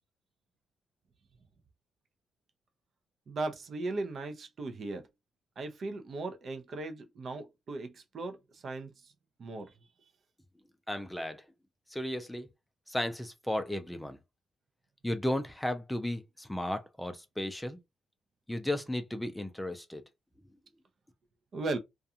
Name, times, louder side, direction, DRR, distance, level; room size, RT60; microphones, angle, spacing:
voice 1, 3.3-5.1 5.6-8.9 9.4-9.7 21.5-21.8, right 2 dB, 50° right, 0.5 m, -37 dB
voice 2, 10.9-11.4 11.9-12.5 12.9-14.2 15.0-17.8 18.5-20.0, left 1 dB, 5° left, 0.4 m, -34 dB
2.4 x 2.3 x 2.7 m
cardioid pair, 90°, 0 cm